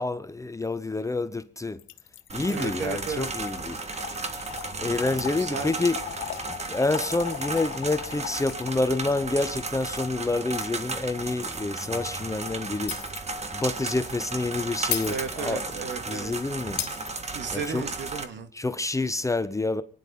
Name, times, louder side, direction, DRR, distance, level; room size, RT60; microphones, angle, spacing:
voice 1, 0.0-1.8 2.3-3.8 4.8-6.0 6.5-13.0 13.5-15.6 16.1-16.8 17.5-17.9 18.5-19.8, left 2 dB, 15° left, 0.9 m, -28 dB
Trickle dribble / Fill (with liquid), 1.8-9.1, left 14 dB, 85° left, 0.9 m, -40 dB
sound 1, 2.3-18.2, right 3 dB, 35° right, 1.8 m, -34 dB
voice 2, 2.5-3.3 5.3-5.8 15.1-16.3 17.3-18.5, right 6 dB, 65° right, 2.3 m, -34 dB
Shatter, 12.9-13.4 13.7-13.9 14.9-15.9 16.8-17.8, left 7 dB, 55° left, 2.6 m, -33 dB
24.0 x 10.5 x 5.4 m
cardioid pair, 90°, 20 cm